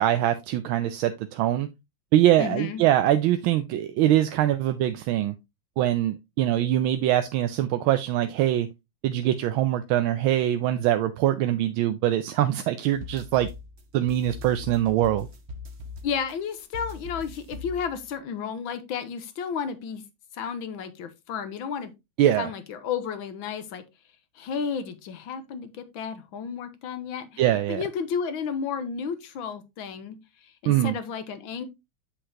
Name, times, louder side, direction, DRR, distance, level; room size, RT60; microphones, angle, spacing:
voice 1, 0.0-1.7 2.1-5.3 5.8-8.7 9.0-13.5 13.9-15.3 22.2-22.5 27.4-27.8 30.7-31.0, right 12 dB, 85° right, 1.4 m, -23 dB
voice 2, 2.4-2.8 16.0-20.0 20.3-21.9 22.4-23.8 24.4-27.4 27.7-30.2 30.4-31.6, left 6 dB, 80° left, 1.8 m, -32 dB
sound 1, 12.9-18.2, left 3 dB, 45° right, 1.0 m, -41 dB
7.8 x 6.5 x 2.8 m
omnidirectional pair, 2.2 m